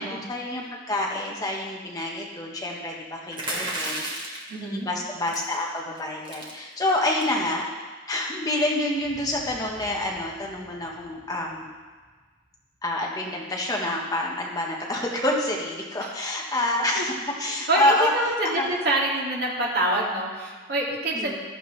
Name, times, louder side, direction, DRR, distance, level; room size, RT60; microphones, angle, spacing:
voice 1, 0.0-7.7 8.1-11.7 12.8-17.1 17.4-18.7 21.1-21.3, left 1 dB, 15° left, -2 dB, 1.3 m, -28 dB
sound 1, 3.3-4.5 5.3-5.6 5.9-6.0 6.2-6.5 7.1-7.4, right 1 dB, 25° right, 1.8 m, -32 dB
voice 2, 4.5-4.9 16.9-17.0 17.4-21.4, right 1 dB, 50° right, -4 dB, 2.4 m, -26 dB
sound 2, 8.9-13.5, equal, ahead, 2.9 m, -52 dB
14.5 x 12.5 x 3.3 m, 1.4 s
head